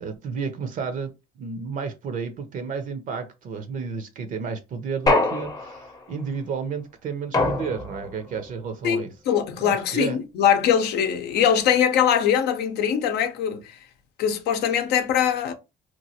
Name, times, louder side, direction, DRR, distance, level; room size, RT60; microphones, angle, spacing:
voice 1, 0.0-9.1 9.6-10.2, right 5 dB, 50° right, 0.6 m, -32 dB
sound 1, 5.1-6.1 7.3-8.2, left 2 dB, 20° left, 0.7 m, -24 dB
voice 2, 8.8-13.7 14.2-15.5, left 8 dB, 75° left, 0.6 m, -22 dB
2.9 x 2.3 x 2.8 m
cardioid pair, 110°, 17 cm